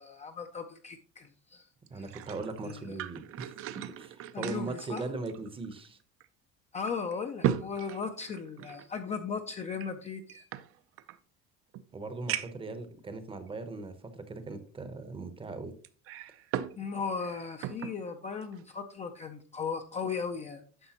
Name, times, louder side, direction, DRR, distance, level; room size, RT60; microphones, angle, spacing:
voice 1, 0.0-2.1 2.6-3.0 4.3-5.0 6.7-10.4 16.8-20.9, left 5 dB, 20° left, 5 dB, 0.4 m, -37 dB
voice 2, 1.9-6.0 11.9-15.7, right 3 dB, 15° right, 10 dB, 0.7 m, -39 dB
sound 1, 1.9-5.9 6.2-6.3 6.9-8.9 9.7-11.2 11.7-11.8 12.3-12.7 13.5-13.6 15.8-16.8 17.1-18.0 18.4-18.6, right 11 dB, 45° right, 0.5 m, -37 dB
9.8 x 6.6 x 2.9 m, 0.43 s
cardioid pair, 155°, 31 cm